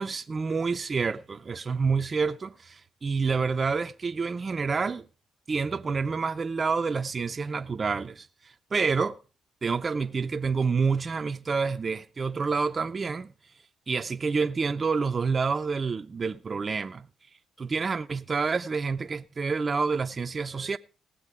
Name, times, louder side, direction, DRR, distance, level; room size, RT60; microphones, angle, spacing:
voice 1, 0.0-2.7 3.0-5.0 5.5-8.3 8.7-9.2 9.6-13.3 13.9-17.1 17.6-20.8, right 5 dB, 35° right, 0.5 m, -28 dB
18.0 x 7.4 x 4.8 m
cardioid pair, 90°, 0 cm